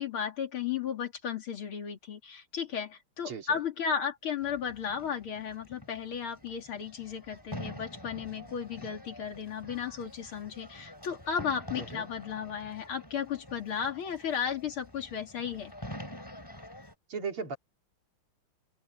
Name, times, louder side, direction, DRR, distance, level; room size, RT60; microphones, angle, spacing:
voice 1, 0.0-15.7, left 7 dB, 75° left, 3.4 m, -34 dB
voice 2, 3.3-3.6 11.9-12.1 17.1-17.6, right 5 dB, 85° right, 4.3 m, -36 dB
sound 1, 4.4-16.9, left 1 dB, 10° left, 4.3 m, -47 dB
open air
omnidirectional pair, 2.3 m